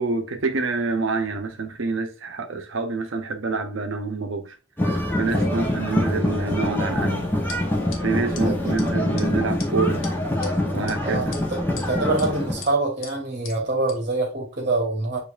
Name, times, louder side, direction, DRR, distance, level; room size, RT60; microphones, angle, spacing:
voice 1, 0.0-4.5 5.2-7.3 8.0-10.0 10.7-11.3, right 4 dB, 80° right, 0.8 m, -27 dB
sound 1, 4.8-12.6, left 1 dB, 10° left, 0.8 m, -25 dB
sound 2, 7.5-7.6 7.9-8.0 8.3-8.4 8.8-8.9 9.2-9.3 9.6-9.7 10.0-10.5 10.9-11.0 11.3-11.9 12.2-12.3 12.6-12.7 13.0-13.1 13.4-13.6 13.9-14.0, left 5 dB, 80° left, 1.0 m, -38 dB
voice 2, 11.0-15.2, right 2 dB, 40° right, 1.2 m, -25 dB
7.0 x 2.7 x 2.5 m
head